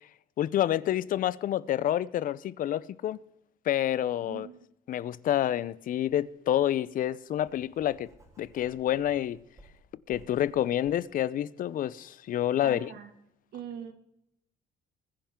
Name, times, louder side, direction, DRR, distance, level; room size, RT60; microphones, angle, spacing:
voice 1, 0.4-3.2 3.7-4.5 4.9-8.1 8.4-9.4 10.1-12.9, left 11 dB, 55° left, 0.6 m, -28 dB
voice 2, 4.2-4.7 12.6-13.1 13.5-13.9, right 8 dB, 75° right, 1.9 m, -42 dB
Writing, 5.9-6.1 6.6-11.0, right 1 dB, 20° right, 3.9 m, -58 dB
21.0 x 10.0 x 3.7 m
cardioid pair, 110°, 17 cm